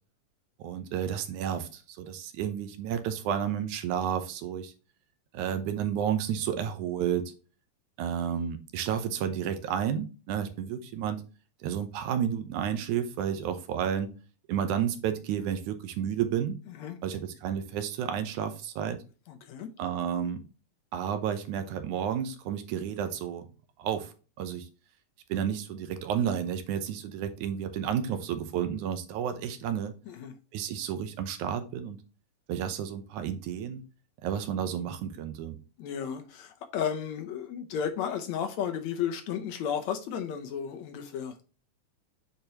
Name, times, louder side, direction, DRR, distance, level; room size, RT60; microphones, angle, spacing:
voice 1, 0.6-4.7 5.3-7.3 8.0-11.2 11.6-14.1 14.5-16.6 17.0-19.0 19.8-20.5 20.9-23.5 23.8-24.1 24.4-24.7 25.3-29.9 30.5-32.0 32.5-33.8 34.2-35.6, right 9 dB, 80° right, 2.2 m, -31 dB
voice 2, 19.3-19.7 30.1-30.3 35.8-41.3, left 8 dB, 70° left, 1.9 m, -33 dB
8.6 x 4.5 x 2.9 m
omnidirectional pair, 3.6 m